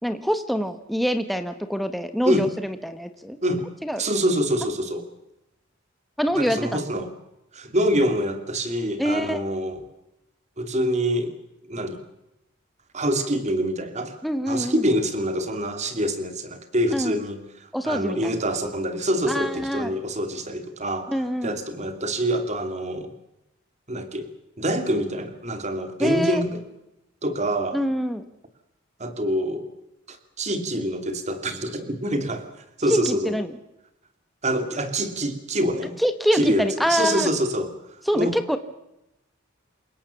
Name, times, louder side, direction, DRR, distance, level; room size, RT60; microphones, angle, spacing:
voice 1, 0.0-3.4 3.8-4.0 6.2-6.8 9.0-9.4 14.2-14.9 16.9-17.2 17.7-18.4 19.3-19.9 21.1-21.5 26.0-26.4 27.7-28.2 32.9-33.5 36.0-37.3 38.1-38.6, equal, ahead, 8 dB, 1.2 m, -25 dB
voice 2, 4.0-5.1 6.4-7.1 7.5-9.8 10.6-11.3 11.7-12.0 12.9-14.2 14.5-21.1 21.4-23.1 23.9-24.3 24.6-26.6 27.2-27.8 29.0-29.7 30.1-32.5 32.8-33.3 34.4-36.0 36.3-37.7 38.1-38.3, equal, 35° right, 8 dB, 2.7 m, -25 dB
28.5 x 17.5 x 7.0 m, 0.89 s
head